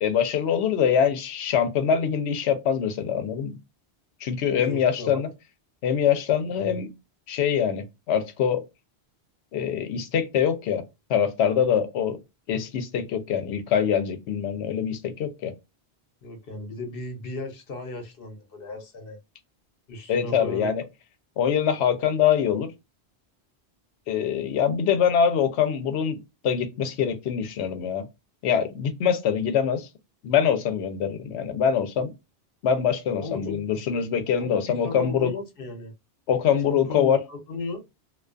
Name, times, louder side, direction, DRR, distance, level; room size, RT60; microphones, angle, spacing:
voice 1, 0.0-3.5 4.2-5.3 5.8-6.9 7.3-8.6 9.5-10.8 11.1-12.2 12.5-15.5 20.1-20.8 21.4-22.7 24.1-26.2 26.4-28.1 28.4-29.9 30.2-32.1 32.6-35.3 36.3-37.2, left 8 dB, 85° left, 0.9 m, -24 dB
voice 2, 4.5-5.3 6.6-6.8 16.2-19.2 19.9-20.7 33.2-33.6 33.9-34.0 34.4-35.9 36.7-37.8, left 3 dB, 60° left, 1.0 m, -35 dB
2.4 x 2.3 x 2.4 m
omnidirectional pair, 1.1 m